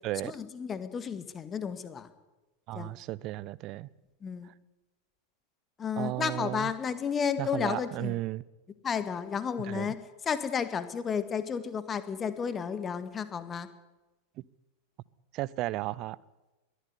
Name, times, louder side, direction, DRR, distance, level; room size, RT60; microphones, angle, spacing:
voice 1, 0.2-2.1 2.8-2.9 4.2-4.5 5.8-8.2 8.8-10.0 10.3-13.7, left 7 dB, 20° left, 1.8 m, -32 dB
voice 2, 2.7-3.9 6.0-6.7 7.4-8.4 9.7-9.9 14.4-14.5 15.3-16.2, right 17 dB, 40° right, 0.7 m, -34 dB
22.0 x 14.5 x 9.8 m
figure-of-eight pair, 90°, 0 cm